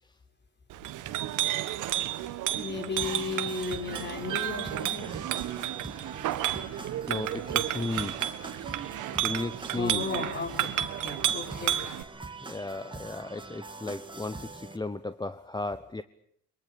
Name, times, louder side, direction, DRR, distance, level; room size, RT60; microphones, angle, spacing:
Chink clink, 0.7-12.0, right 13 dB, 90° right, 1.5 m, -32 dB
voice 1, 2.6-5.1 9.8-11.8, left 4 dB, 35° left, 5 dB, 5.7 m, -35 dB
sound 1, 3.0-14.8, right 3 dB, 15° right, 2.6 m, -44 dB
voice 2, 6.5-8.3 9.2-10.1 11.8-11.9 12.4-16.0, left 2 dB, 15° left, 13 dB, 0.9 m, -36 dB
23.0 x 23.0 x 8.4 m, 0.69 s
cardioid pair, 90°, 30 cm